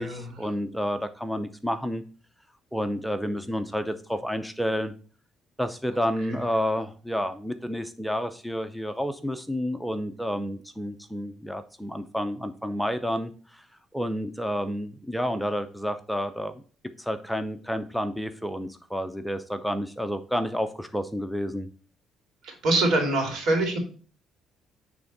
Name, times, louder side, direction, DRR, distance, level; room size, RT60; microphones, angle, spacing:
voice 1, 0.0-2.0 2.7-4.9 5.6-13.6 13.9-16.6 17.0-21.7, equal, ahead, 9 dB, 0.6 m, -30 dB
voice 2, 22.6-23.8, right 2 dB, 75° right, 2 dB, 2.5 m, -23 dB
9.2 x 3.5 x 4.0 m, 0.40 s
cardioid pair, 105°, 0 cm